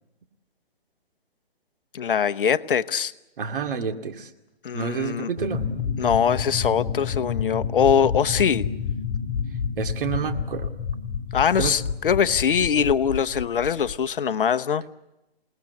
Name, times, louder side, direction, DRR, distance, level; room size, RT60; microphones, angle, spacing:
voice 1, 1.9-3.1 4.6-5.3 6.0-8.6 11.3-14.8, left 7 dB, 55° left, 13 dB, 0.9 m, -22 dB
voice 2, 3.4-4.3 4.7-5.7 9.8-10.7 11.6-11.8, right 6 dB, 55° right, 5 dB, 2.4 m, -29 dB
sound 1, 5.4-14.0, left 6 dB, 40° left, 3.6 m, -29 dB
28.5 x 19.0 x 8.3 m, 0.95 s
hypercardioid pair, 145°, 31 cm